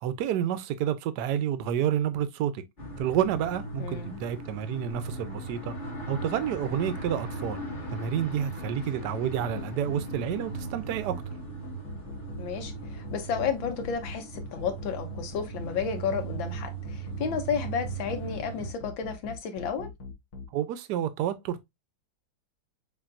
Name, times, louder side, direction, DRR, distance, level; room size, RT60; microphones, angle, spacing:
voice 1, 0.0-2.6 3.0-5.7 6.1-7.7 7.9-11.2 20.5-21.6, right 10 dB, 70° right, 1.1 m, -29 dB
sound 1, 2.8-18.7, right 3 dB, 30° left, 1.3 m, -38 dB
voice 2, 3.8-4.2 12.4-19.9, left 6 dB, 70° left, 1.7 m, -32 dB
sound 2, 4.9-20.4, left 3 dB, 50° left, 1.2 m, -41 dB
7.0 x 2.6 x 2.5 m
omnidirectional pair, 2.3 m